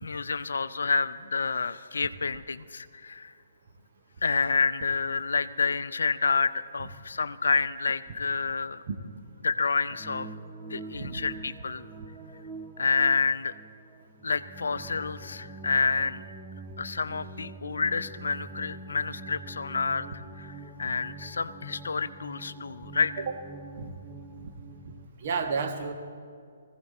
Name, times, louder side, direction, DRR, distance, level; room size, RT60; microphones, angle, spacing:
voice 1, 0.0-3.3 4.2-8.8 9.4-10.3 10.7-11.9 12.8-13.5 14.2-16.2 16.8-20.5 20.8-23.1, left 4 dB, 65° left, 14 dB, 0.5 m, -28 dB
sound 1, 9.9-25.1, right 3 dB, 10° right, 0.7 m, -45 dB
voice 2, 10.9-11.3 23.2-23.3 23.8-23.9 25.2-25.9, right 5 dB, 45° right, 5 dB, 1.4 m, -31 dB
19.5 x 15.5 x 4.2 m, 2.3 s
figure-of-eight pair, 130°, 0 cm